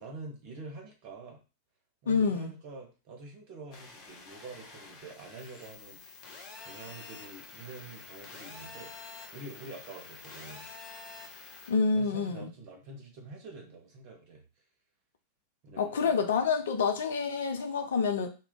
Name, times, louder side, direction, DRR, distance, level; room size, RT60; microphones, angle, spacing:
voice 1, 0.0-1.4 2.0-6.3 6.6-8.9 9.3-10.7 11.9-14.4 15.6-16.1, right 3 dB, 45° right, 1.0 m, -46 dB
voice 2, 2.1-2.5 11.7-12.5 15.8-18.3, left 5 dB, 65° left, 0.5 m, -28 dB
sound 1, 3.7-11.7, left 4 dB, 35° left, 0.8 m, -48 dB
2.3 x 2.2 x 3.6 m
figure-of-eight pair, 90°, 0 cm